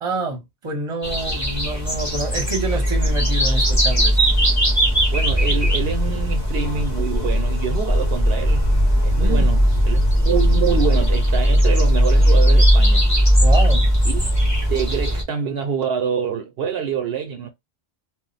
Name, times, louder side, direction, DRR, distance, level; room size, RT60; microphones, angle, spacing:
voice 1, 0.0-4.2 9.2-9.5 13.4-13.9, right 2 dB, 35° right, 0.8 m, -27 dB
sound 1, 1.0-15.2, equal, 20° left, 0.7 m, -18 dB
voice 2, 5.1-8.6 9.0-13.0 14.1-14.3 14.7-17.5, right 7 dB, 70° right, 0.8 m, -26 dB
2.3 x 2.0 x 3.8 m
omnidirectional pair, 1.1 m